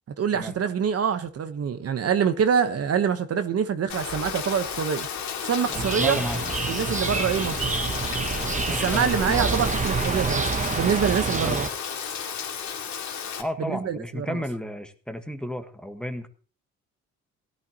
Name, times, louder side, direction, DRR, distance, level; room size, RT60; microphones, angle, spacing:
voice 1, 0.2-5.1 5.4-6.2 6.7-7.8 8.8-11.7 13.6-14.4, right 7 dB, 50° right, 1.2 m, -25 dB
Rain, 3.9-13.4, left 7 dB, 70° left, 2.4 m, -32 dB
voice 2, 5.7-6.4 8.6-9.6 11.4-11.6 13.4-16.3, equal, 5° left, 1.5 m, -33 dB
sound 1, 5.7-11.7, right 5 dB, 25° right, 0.9 m, -28 dB
17.5 x 11.0 x 3.0 m
cardioid pair, 90°, 30 cm